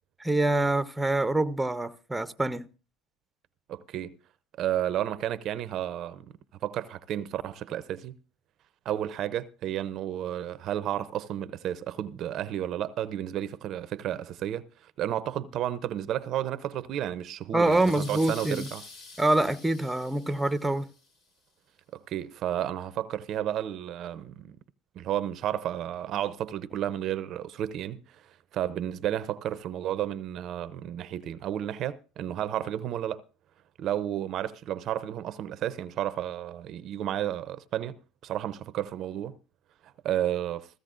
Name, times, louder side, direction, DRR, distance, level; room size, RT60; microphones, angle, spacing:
voice 1, 0.2-2.7 17.5-18.7 19.2-20.9, right 2 dB, 10° right, 0.7 m, -25 dB
voice 2, 3.7-4.2 4.6-6.3 6.6-8.2 8.9-18.8 21.9-24.6 25.0-33.2 33.8-39.4 39.8-40.7, right 11 dB, 55° right, 0.5 m, -32 dB
sound 1, 17.6-21.1, left 3 dB, 65° left, 4.3 m, -47 dB
16.0 x 15.0 x 2.5 m
supercardioid pair, 85°, 0 cm